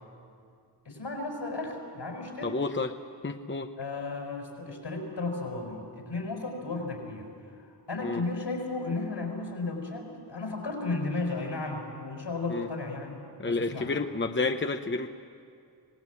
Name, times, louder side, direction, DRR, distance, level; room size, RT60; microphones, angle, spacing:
voice 1, 0.8-2.6 3.8-13.2 13.4-13.9, left 3 dB, 75° left, 2 dB, 5.9 m, -34 dB
voice 2, 2.4-2.9 3.2-3.7 8.0-8.2 12.5-12.7 13.4-15.1, left 3 dB, 25° left, 7 dB, 0.9 m, -30 dB
26.0 x 19.0 x 8.5 m, 2.3 s
wide cardioid pair, 70°, 44 cm